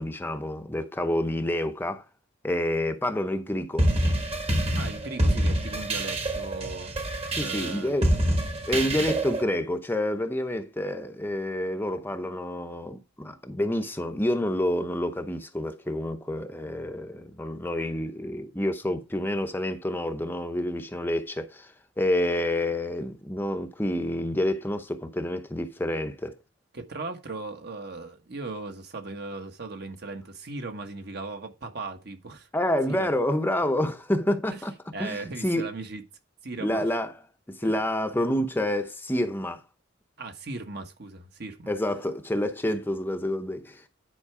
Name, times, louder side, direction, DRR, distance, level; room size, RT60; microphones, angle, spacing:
voice 1, 0.0-2.0 2.4-3.9 7.3-8.1 8.7-26.3 32.5-34.7 35.0-35.7 36.6-37.2 37.5-39.6 41.7-43.9, left 1 dB, 10° left, 0.7 m, -28 dB
sound 1, 3.8-9.4, right 1 dB, 30° right, 1.3 m, -26 dB
voice 2, 4.8-6.9 7.4-8.0 26.7-32.5 32.9-33.1 34.5-34.6 34.9-36.0 36.4-36.8 37.6-37.7 40.2-41.7, right 3 dB, 55° right, 1.3 m, -37 dB
10.0 x 4.5 x 4.8 m
head